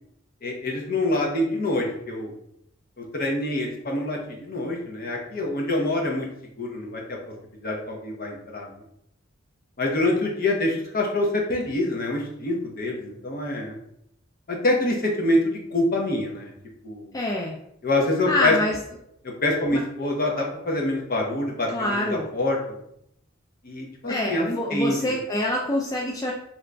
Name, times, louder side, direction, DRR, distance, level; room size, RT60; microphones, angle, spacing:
voice 1, 0.4-2.4 3.0-6.3 6.6-7.2 7.6-8.7 9.8-13.8 14.5-16.5 16.8-17.1 17.8-18.6 19.2-22.8 23.6-25.2, left 2 dB, 45° left, 0 dB, 0.8 m, -26 dB
voice 2, 17.1-17.6 18.3-18.8 21.7-22.3 24.1-26.3, left 1 dB, 20° left, -2 dB, 0.3 m, -25 dB
2.9 x 2.5 x 3.3 m, 0.75 s
head